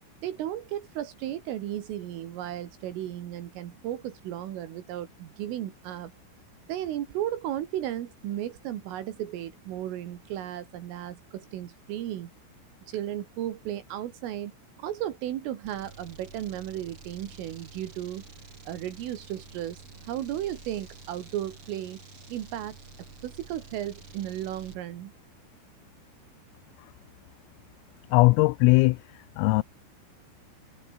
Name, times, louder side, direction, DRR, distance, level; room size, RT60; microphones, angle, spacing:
voice 1, 0.2-6.1 6.7-12.3 12.9-14.5 14.8-18.2 18.7-22.0 22.3-22.8 23.2-25.1, right 12 dB, 80° right, 4.5 m, -35 dB
sound 1, 15.6-24.8, right 4 dB, 30° right, 4.4 m, -49 dB
voice 2, 28.1-29.0 29.4-29.6, left 24 dB, 85° left, 3.3 m, -19 dB
omnidirectional pair, 5.9 m